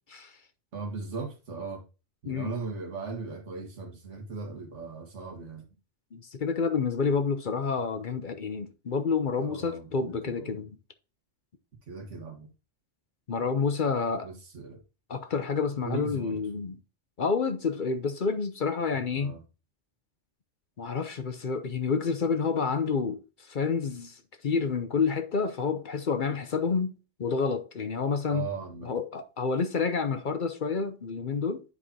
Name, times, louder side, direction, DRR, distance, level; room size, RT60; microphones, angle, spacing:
voice 1, 0.7-1.8 2.2-5.7 9.4-10.7 11.9-12.5 14.2-14.8 15.8-16.4 19.1-19.4 28.3-28.9, right 4 dB, 85° right, 1.9 m, -38 dB
voice 2, 6.1-10.8 13.3-14.3 15.1-16.8 17.2-19.3 20.8-26.9 27.2-28.5 28.8-31.6, left 5 dB, 50° left, 0.8 m, -29 dB
9.8 x 4.9 x 2.8 m
omnidirectional pair, 1.2 m